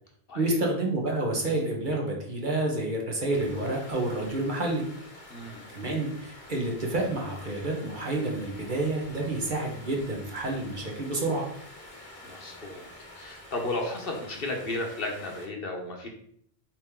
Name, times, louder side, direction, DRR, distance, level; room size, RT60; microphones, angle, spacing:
voice 1, 0.3-4.8 5.7-11.4, right 2 dB, 50° right, -1 dB, 1.4 m, -29 dB
sound 1, 3.3-15.5, left 1 dB, 35° left, 1.2 m, -48 dB
voice 2, 5.3-5.6 12.2-12.9 13.1-16.1, left 2 dB, 60° left, 2 dB, 1.3 m, -34 dB
7.5 x 3.5 x 3.7 m, 0.67 s
omnidirectional pair, 1.1 m